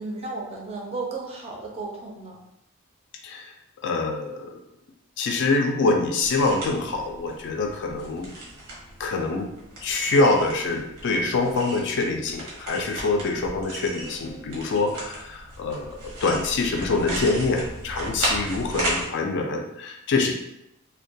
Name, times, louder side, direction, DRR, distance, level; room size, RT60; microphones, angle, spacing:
voice 1, 0.0-2.4 14.0-14.5, right 3 dB, 25° right, -1 dB, 0.4 m, -34 dB
voice 2, 3.8-4.5 5.2-8.3 9.0-9.5 9.8-20.3, left 3 dB, 55° left, 3 dB, 0.3 m, -25 dB
sound 1, 6.2-19.0, right 1 dB, 80° right, 0.8 m, -35 dB
2.2 x 2.1 x 2.6 m, 0.83 s
head